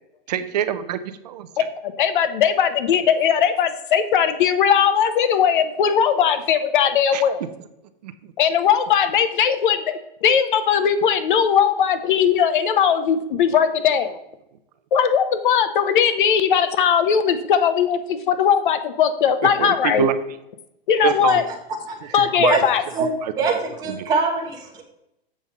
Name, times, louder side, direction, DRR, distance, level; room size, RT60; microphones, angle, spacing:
voice 1, 0.3-1.0 1.2-1.7 7.1-7.2 8.0-8.3 19.6-20.1 21.0-21.4 22.3-22.6 23.0-23.3 23.9-24.1, right 10 dB, 45° right, 11 dB, 0.6 m, -25 dB
voice 2, 1.8-7.4 8.4-14.2 14.9-20.1 20.9-21.4 22.1-22.8, left 8 dB, 55° left, 11 dB, 0.8 m, -19 dB
voice 3, 21.9-22.6 22.9-23.1 23.4-24.8, right 4 dB, 15° right, 0 dB, 1.0 m, -24 dB
7.3 x 5.2 x 4.1 m, 0.84 s
hypercardioid pair, 165°, 30 cm